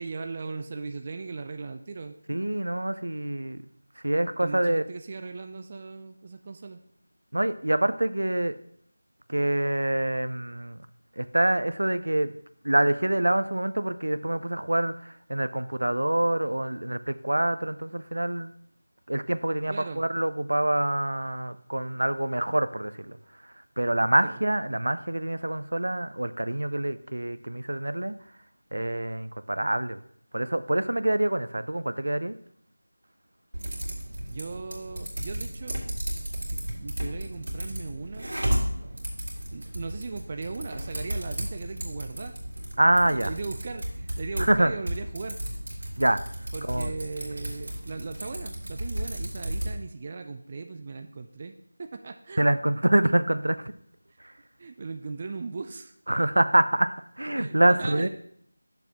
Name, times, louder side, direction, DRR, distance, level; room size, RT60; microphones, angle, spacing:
voice 1, 0.0-2.2 4.4-6.8 19.7-20.0 24.2-24.3 24.7-24.8 34.3-35.8 36.4-38.3 39.5-42.3 43.0-45.4 46.5-52.5 54.6-55.9 57.4-58.1, right 4 dB, 20° right, 6 dB, 0.3 m, -38 dB
voice 2, 2.3-3.6 4.0-4.8 7.3-8.5 9.3-10.8 11.2-12.3 12.6-18.5 19.1-23.2 23.4-28.2 28.7-30.0 30.3-32.4 42.8-43.3 44.4-44.7 46.0-46.2 46.6-46.9 52.4-53.7 54.2-54.3 56.1-58.1, right 1 dB, 85° right, 13 dB, 0.5 m, -26 dB
Typing, 33.5-49.8, equal, 65° right, 2.5 m, -34 dB
8.3 x 6.8 x 2.9 m, 0.66 s
figure-of-eight pair, 175°, 0 cm